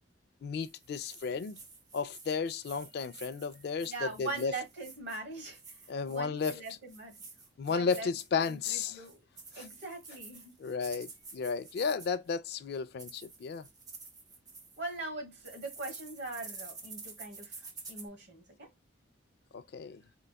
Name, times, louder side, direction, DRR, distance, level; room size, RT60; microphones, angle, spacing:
voice 1, 0.4-1.6 1.9-4.6 5.9-6.6 7.6-9.0 9.5-9.7 10.6-13.7 19.5-20.0, left 5 dB, 60° left, 0.3 m, -33 dB
sound 1, 0.6-12.3 12.7-15.0 15.4-18.1, right 4 dB, 20° right, 0.5 m, -50 dB
voice 2, 3.8-5.8 6.1-7.1 7.7-8.1 8.5-9.2 9.5-10.5 14.8-18.7, right 3 dB, 65° right, 1.4 m, -41 dB
3.8 x 2.2 x 2.2 m
head